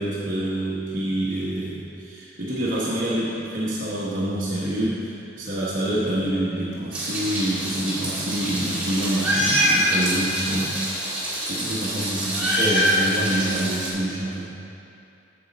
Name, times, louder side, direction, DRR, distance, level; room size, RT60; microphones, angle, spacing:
voice 1, 0.0-11.0 11.5-14.5, right 1 dB, 45° right, -8 dB, 1.2 m, -27 dB
Meow, 6.9-13.9, equal, 5° right, 1.9 m, -25 dB
9.4 x 6.9 x 4.1 m, 2.7 s
head